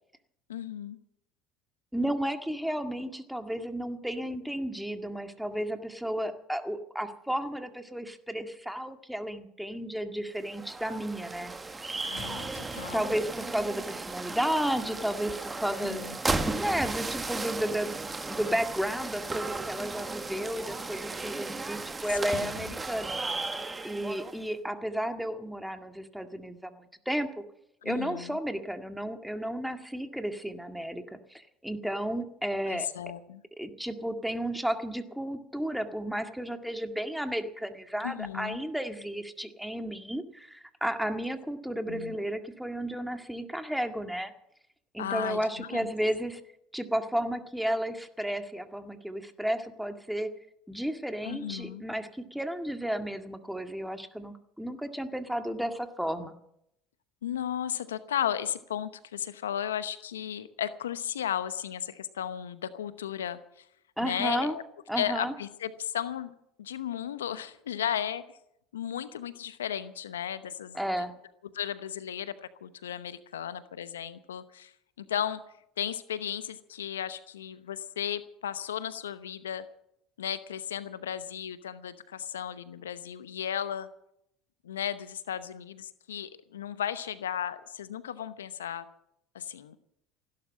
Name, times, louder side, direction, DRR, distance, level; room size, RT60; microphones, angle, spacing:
voice 1, 0.5-1.0 12.0-13.1 15.8-16.2 22.3-22.7 27.8-28.4 32.7-33.4 38.0-38.6 41.8-42.1 45.0-45.9 51.2-51.8 57.2-63.6 64.0-64.6 64.9-66.3 66.6-68.2 68.7-71.0 71.5-74.7 75.0-75.4 75.8-79.7 80.2-83.9 84.6-88.9 89.3-89.8, left 10 dB, 85° left, 14 dB, 0.8 m, -35 dB
voice 2, 1.9-11.5 12.9-16.2 16.5-23.1 23.8-27.4 27.8-32.9 33.6-44.3 44.9-46.4 46.7-50.3 50.7-56.3 64.0-64.6 64.9-65.3 70.7-71.1, equal, ahead, 7 dB, 1.9 m, -33 dB
sound 1, 10.4-24.5, right 3 dB, 20° right, 1.6 m, -35 dB
16.0 x 12.0 x 7.4 m, 0.76 s
hypercardioid pair, 70°, 0 cm